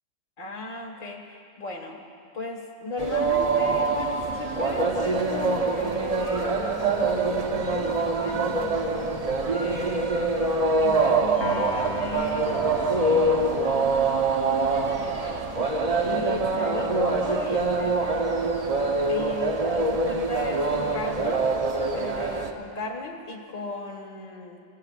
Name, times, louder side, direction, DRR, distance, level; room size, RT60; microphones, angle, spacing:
voice 1, 0.4-2.0 2.3-6.6 7.1-9.1 9.5-10.2 10.8-14.0 14.6-18.4 19.1-21.5 21.9-24.6, left 3 dB, 80° left, 1 dB, 2.0 m, -36 dB
sound 1, 3.0-22.5, right 3 dB, 35° right, 0.8 m, -25 dB
Piano, 11.4-17.8, left 3 dB, 55° left, 1.7 m, -39 dB
26.5 x 15.5 x 2.5 m, 2.4 s
omnidirectional pair, 1.4 m